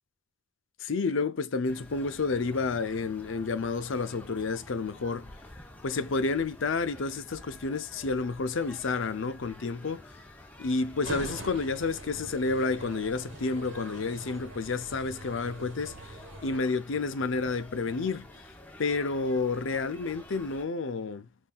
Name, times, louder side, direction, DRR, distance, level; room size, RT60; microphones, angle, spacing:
voice 1, 0.8-5.3 5.8-10.1 10.6-18.3 18.8-21.3, left 4 dB, 70° left, 0.6 m, -30 dB
sound 1, 1.7-20.6, left 1 dB, 10° left, 0.8 m, -50 dB
sound 2, 11.0-16.6, right 2 dB, 65° right, 1.2 m, -43 dB
5.5 x 2.7 x 2.3 m
head